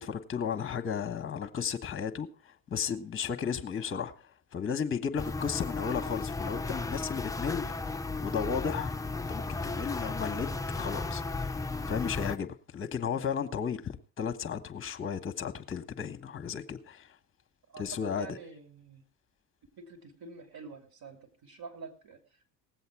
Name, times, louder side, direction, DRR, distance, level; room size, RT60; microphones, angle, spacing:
voice 1, 0.0-4.1 4.5-7.7 8.2-9.0 9.3-10.5 10.7-11.5 11.9-17.1 17.8-18.3, left 7 dB, 25° left, 1.3 m, -34 dB
sound 1, 5.2-12.4, left 3 dB, 5° left, 0.5 m, -35 dB
voice 2, 17.7-19.0 19.8-22.2, right 5 dB, 45° right, 2.8 m, -47 dB
18.0 x 7.9 x 4.8 m
hypercardioid pair, 65°, 48 cm